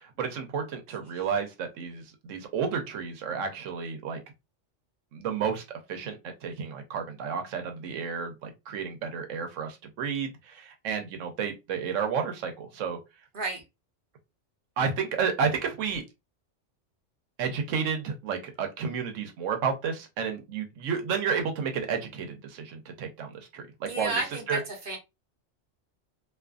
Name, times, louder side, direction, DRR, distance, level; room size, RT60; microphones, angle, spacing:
voice 1, 0.0-4.2 5.1-5.6 5.9-13.0 14.8-16.0 17.4-24.2 24.5-24.6, right 6 dB, 90° right, 1.0 m, -31 dB
voice 2, 23.9-24.6 24.9-25.0, right 3 dB, 50° right, 0.8 m, -31 dB
2.5 x 2.5 x 2.3 m
omnidirectional pair, 1.3 m